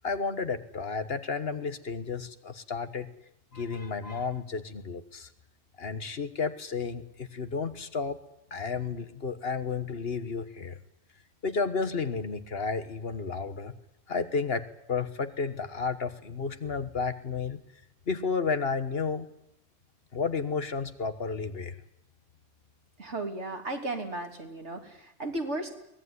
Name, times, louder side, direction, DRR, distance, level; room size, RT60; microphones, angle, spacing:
voice 1, 0.0-3.1 3.5-5.3 5.8-8.2 8.5-10.8 11.4-13.7 14.1-17.6 18.1-19.3 20.1-21.8, left 5 dB, 60° left, 11 dB, 1.6 m, -32 dB
voice 2, 23.0-25.8, right 2 dB, 80° right, 3 dB, 3.6 m, -35 dB
23.0 x 19.0 x 9.7 m, 0.81 s
omnidirectional pair, 1.1 m